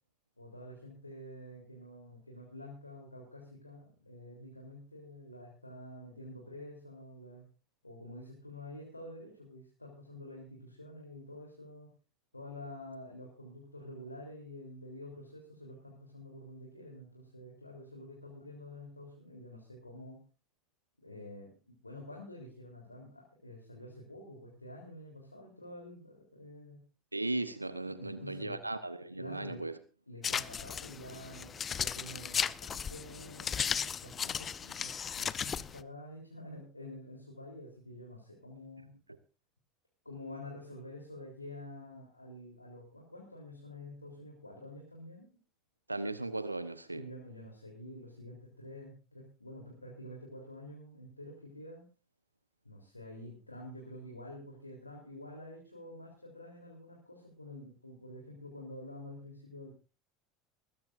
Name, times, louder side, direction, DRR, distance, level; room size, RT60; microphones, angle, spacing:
voice 1, 0.4-7.4 7.8-11.9 12.3-20.2 21.0-26.8 27.9-28.6 29.2-29.6 30.1-38.9 40.1-45.2 46.9-51.8 52.7-59.7, left 1 dB, 85° left, 3.4 m, -48 dB
voice 2, 27.1-29.8 45.9-47.1, right 2 dB, 85° right, 0.9 m, -37 dB
sound 1, 30.2-35.8, left 7 dB, 30° left, 0.7 m, -36 dB
20.5 x 16.0 x 2.6 m
figure-of-eight pair, 75°, 0 cm